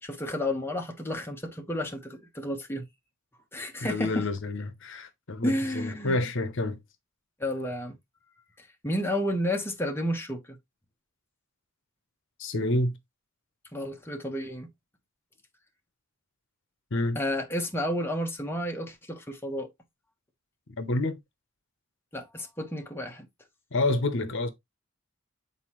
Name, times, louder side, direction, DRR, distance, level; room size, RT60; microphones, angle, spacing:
voice 1, 0.0-2.8 3.5-4.3 5.4-6.2 7.4-7.9 8.6-10.6 13.7-14.7 17.1-19.7 22.1-23.3, equal, 10° left, 1.3 m, -31 dB
voice 2, 3.8-6.8 12.4-12.9 16.9-17.2 20.8-21.2 23.7-24.5, left 2 dB, 65° left, 0.9 m, -28 dB
8.1 x 4.3 x 3.1 m
head